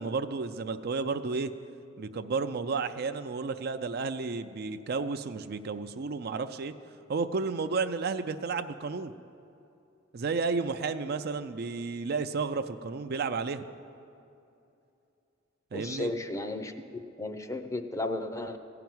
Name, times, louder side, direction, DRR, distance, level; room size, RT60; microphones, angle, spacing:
voice 1, 0.0-1.5 2.0-6.7 7.1-9.1 10.1-13.6 15.7-16.1, right 4 dB, 55° right, 9 dB, 0.5 m, -32 dB
voice 2, 15.7-16.7 17.2-18.6, left 2 dB, 15° left, 8 dB, 0.6 m, -34 dB
15.5 x 5.9 x 9.3 m, 2.7 s
head